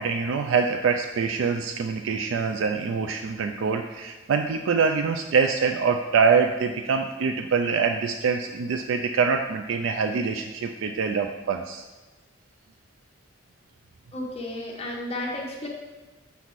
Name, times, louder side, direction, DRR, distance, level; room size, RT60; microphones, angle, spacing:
voice 1, 0.0-11.8, right 5 dB, 90° right, 6 dB, 0.4 m, -24 dB
voice 2, 14.1-15.7, left 1 dB, 30° left, -1 dB, 0.9 m, -33 dB
6.9 x 4.1 x 4.6 m, 1.2 s
head